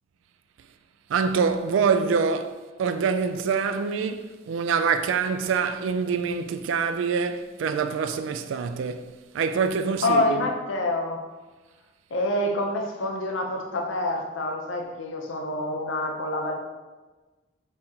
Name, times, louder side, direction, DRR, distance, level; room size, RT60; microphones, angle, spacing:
voice 1, 1.1-10.5, right 5 dB, 75° right, 0.3 m, -25 dB
voice 2, 10.0-11.2 12.1-16.5, left 1 dB, 75° left, 0.6 m, -27 dB
4.2 x 2.8 x 3.5 m
head